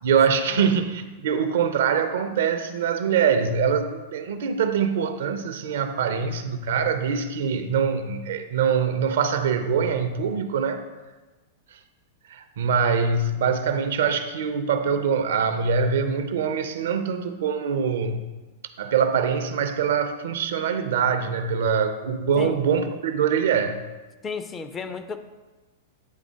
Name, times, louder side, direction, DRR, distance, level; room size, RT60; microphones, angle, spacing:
voice 1, 0.0-10.8 12.3-18.3 18.8-23.8, right 6 dB, 60° right, 9 dB, 0.5 m, -24 dB
voice 2, 24.2-25.2, left 5 dB, 20° left, 9 dB, 0.4 m, -33 dB
9.1 x 3.6 x 3.6 m, 1.2 s
figure-of-eight pair, 95°, 0 cm